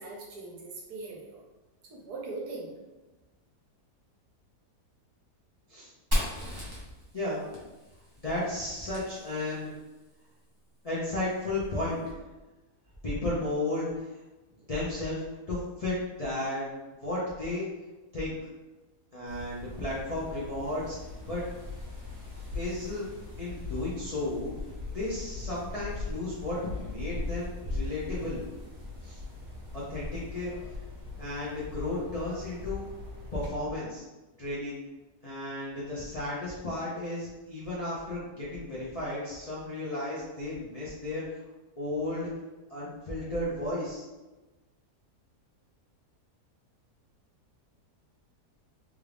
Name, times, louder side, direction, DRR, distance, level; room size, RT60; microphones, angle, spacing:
voice 1, 0.0-1.4 1.9-2.7, right 3 dB, 75° right, -2 dB, 1.3 m, -40 dB
Fire, 6.1-9.8, equal, 20° right, 0.8 m, -35 dB
voice 2, 8.2-9.7 10.8-12.0 13.0-14.2 14.7-16.7 17.0-17.7 18.1-18.4 19.1-21.4 22.5-23.1 23.4-24.5 24.9-28.4 29.0-29.2 29.7-30.5 31.2-32.9 33.3-34.0 34.4-34.8 35.2-41.4 41.8-42.3 42.7-44.0, left 2 dB, 60° left, -8 dB, 0.3 m, -33 dB
sound 1, 19.3-33.5, left 3 dB, 35° right, 1.3 m, -40 dB
3.5 x 2.4 x 3.3 m, 1.1 s
omnidirectional pair, 1.7 m